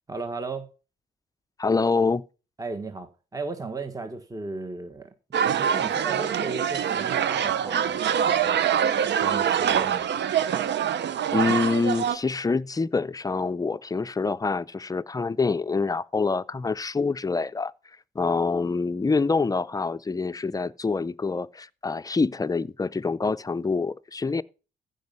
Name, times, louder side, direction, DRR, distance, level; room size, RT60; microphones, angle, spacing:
voice 1, 0.1-0.7 2.6-5.1 5.5-8.6 9.1-10.1, right 3 dB, 15° right, 1.4 m, -35 dB
voice 2, 1.6-2.2 11.3-17.7 18.2-24.4, left 4 dB, 20° left, 0.5 m, -26 dB
sound 1, 5.3-12.2, right 8 dB, 60° right, 0.8 m, -24 dB
14.5 x 5.3 x 5.5 m
cardioid pair, 90°, 20 cm